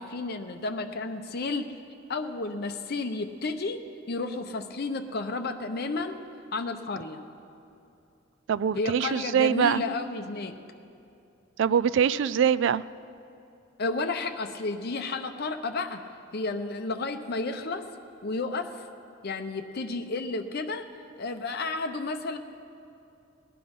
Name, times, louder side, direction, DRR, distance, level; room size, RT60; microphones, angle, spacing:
voice 1, 0.0-1.7 2.1-6.2 6.5-7.2 8.7-10.6 13.8-16.0 16.3-17.9 18.2-18.9 19.2-20.9 21.2-22.4, left 3 dB, 50° left, 7 dB, 0.8 m, -32 dB
voice 2, 8.5-9.8 11.6-12.8, right 8 dB, 65° right, 18 dB, 0.3 m, -23 dB
19.0 x 10.0 x 5.4 m, 2.6 s
head